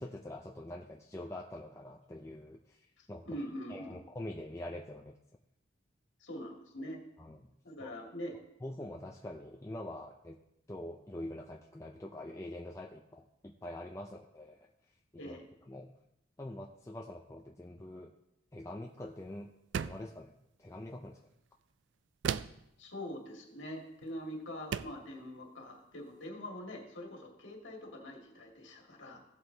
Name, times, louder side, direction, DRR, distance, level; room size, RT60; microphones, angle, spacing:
voice 1, 0.0-3.4 3.7-5.2 7.2-7.5 7.8-7.9 8.6-10.4 10.7-14.7 15.1-15.4 15.7-15.9 16.4-18.1 18.5-19.5 19.8-21.2, left 1 dB, 15° left, 1 dB, 0.4 m, -45 dB
voice 2, 3.0-4.0 6.2-7.0 7.6-8.4 15.2-15.4 22.8-29.2, equal, 90° left, 0 dB, 2.0 m, -44 dB
sound 1, 19.7-20.2 22.2-22.7 24.0-24.2 24.7-25.1, right 7 dB, 75° right, 0.3 m, -36 dB
16.0 x 7.8 x 2.8 m, 0.83 s
head